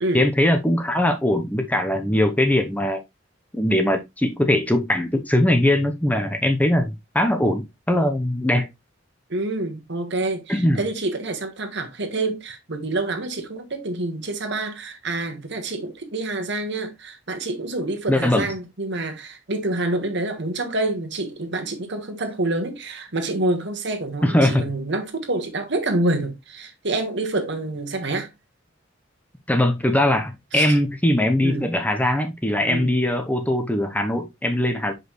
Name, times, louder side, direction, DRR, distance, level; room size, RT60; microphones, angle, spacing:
voice 1, 0.1-3.0 3.5-8.7 10.5-10.8 18.1-18.5 24.2-24.6 29.5-34.9, left 1 dB, 10° left, 0.8 m, -21 dB
voice 2, 9.3-28.3 30.5-30.8 31.4-31.7 32.7-32.9, right 2 dB, 60° right, 1.4 m, -27 dB
6.2 x 5.2 x 3.1 m
head